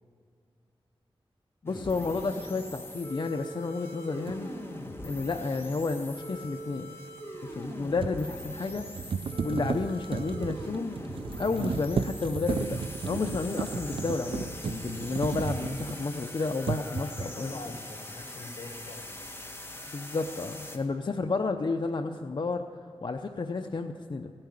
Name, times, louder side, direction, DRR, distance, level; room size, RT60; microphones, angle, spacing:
voice 1, 1.6-4.5 5.0-6.9 7.5-8.9 9.4-10.9 11.4-17.5 19.9-22.7 23.0-24.3, left 3 dB, 55° left, 5 dB, 0.6 m, -31 dB
sound 1, 1.7-20.8, left 1 dB, 25° left, 1.8 m, -42 dB
sound 2, 4.3-4.4 7.5-16.3 16.6-17.4, right 6 dB, 65° right, 0.4 m, -34 dB
voice 2, 16.6-19.3 21.2-21.3, left 3 dB, 75° left, 6 dB, 1.5 m, -44 dB
16.5 x 8.8 x 9.6 m, 2.3 s
wide cardioid pair, 75°, 10 cm